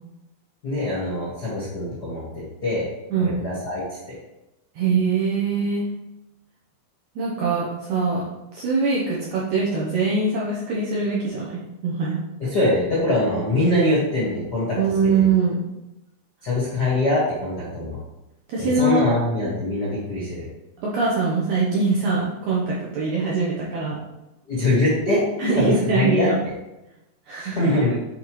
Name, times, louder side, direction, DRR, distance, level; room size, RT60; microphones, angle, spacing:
voice 1, 0.6-2.2 2.6-2.8 3.2-3.8 4.1-4.2 12.4-14.8 15.2-15.3 16.4-18.0 18.6-20.4 24.5-25.2 25.5-26.5 27.4-28.0, left 1 dB, 80° left, -7 dB, 0.9 m, -23 dB
voice 2, 4.7-5.9 7.1-8.2 8.5-12.2 14.8-15.7 18.5-19.2 20.8-24.0 25.4-26.3 27.3-27.7, right 4 dB, 75° right, -5 dB, 1.8 m, -23 dB
7.9 x 4.1 x 3.0 m, 0.96 s
omnidirectional pair, 4.5 m